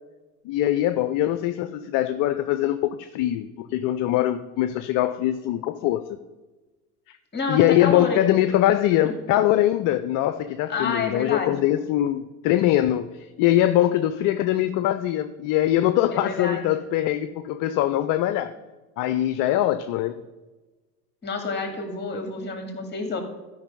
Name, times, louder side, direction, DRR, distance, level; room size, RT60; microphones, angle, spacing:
voice 1, 0.4-6.2 7.5-18.5 19.0-20.1, left 13 dB, 45° left, 11 dB, 0.6 m, -22 dB
voice 2, 7.3-8.4 9.0-9.1 10.7-11.5 16.1-16.7 21.2-23.2, left 4 dB, 20° left, 5 dB, 2.4 m, -29 dB
12.5 x 5.4 x 5.4 m, 1.2 s
hypercardioid pair, 85°, 46 cm